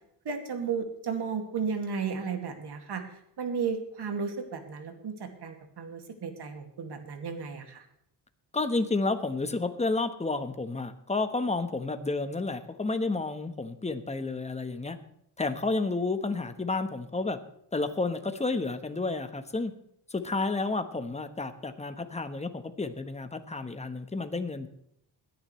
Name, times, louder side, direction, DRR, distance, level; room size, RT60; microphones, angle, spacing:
voice 1, 0.2-7.8, right 5 dB, 65° right, 5 dB, 2.3 m, -34 dB
voice 2, 8.5-15.0 15.4-17.4 17.7-19.7 20.1-24.7, left 3 dB, 15° left, 9 dB, 1.2 m, -31 dB
21.0 x 10.5 x 3.2 m, 0.74 s
wide cardioid pair, 125°, 43 cm